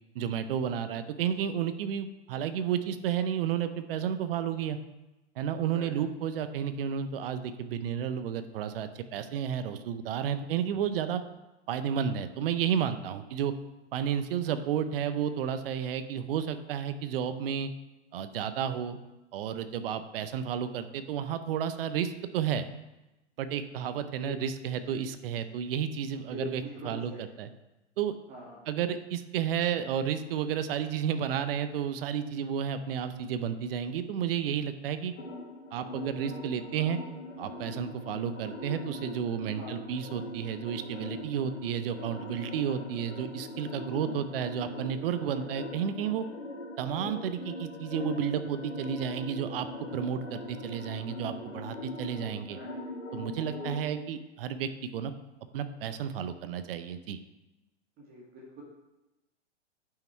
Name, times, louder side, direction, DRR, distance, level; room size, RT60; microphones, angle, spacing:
voice 1, 0.1-4.8 5.4-11.2 11.7-13.5 13.9-17.7 18.1-19.0 19.3-22.6 23.4-27.5 28.0-28.1 28.7-35.1 35.7-37.0 37.4-46.2 46.8-52.6 53.1-55.1 55.5-57.2, right 8 dB, 50° right, 11 dB, 0.8 m, -32 dB
voice 2, 26.3-27.2 28.3-28.6 39.5-39.7 45.3-45.4 52.5-52.8 58.1-58.6, left 1 dB, 25° right, -2 dB, 1.9 m, -43 dB
sound 1, 35.2-53.8, left 2 dB, 90° left, 1.6 m, -41 dB
8.9 x 5.8 x 4.5 m, 1.0 s
hypercardioid pair, 115°, 36 cm